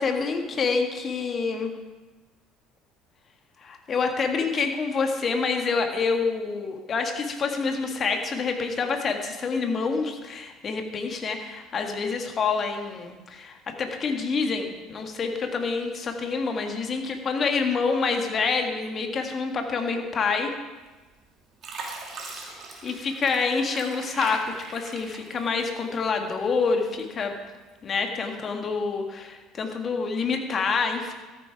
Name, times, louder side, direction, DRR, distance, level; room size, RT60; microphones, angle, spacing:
voice 1, 0.0-1.8 3.6-20.5 22.8-27.3 27.8-31.1, left 4 dB, 40° left, 4 dB, 1.8 m, -27 dB
Fill (with liquid), 20.9-21.2 21.6-26.0 26.4-27.3 27.8-28.0, right 3 dB, 45° right, 2.6 m, -40 dB
13.5 x 8.2 x 4.9 m, 1.2 s
hypercardioid pair, 65°, 0 cm